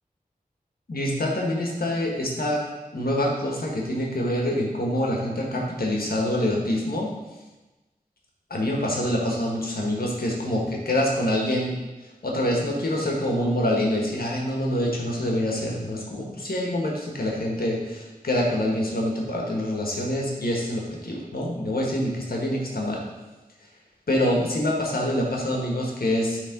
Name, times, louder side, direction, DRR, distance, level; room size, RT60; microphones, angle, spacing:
voice 1, 0.9-2.7 2.9-7.1 8.5-11.8 12.2-23.0 24.1-26.4, left 1 dB, 80° left, -1 dB, 1.5 m, -26 dB
9.0 x 3.7 x 5.2 m, 1.1 s
wide cardioid pair, 40°, 15 cm